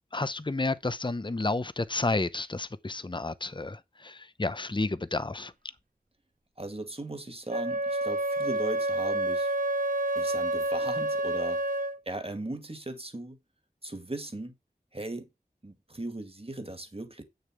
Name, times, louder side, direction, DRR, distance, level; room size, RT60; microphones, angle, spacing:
voice 1, 0.1-5.5, left 2 dB, 30° left, 0.8 m, -31 dB
voice 2, 6.6-9.5 10.2-11.6 12.1-13.4 13.8-14.5 14.9-15.3 15.6-17.2, right 2 dB, 40° right, 2.1 m, -38 dB
Wind instrument woodwind instrument, 7.5-12.0, right 1 dB, 60° right, 1.0 m, -29 dB
8.8 x 6.7 x 4.7 m
wide cardioid pair, 50°, 16 cm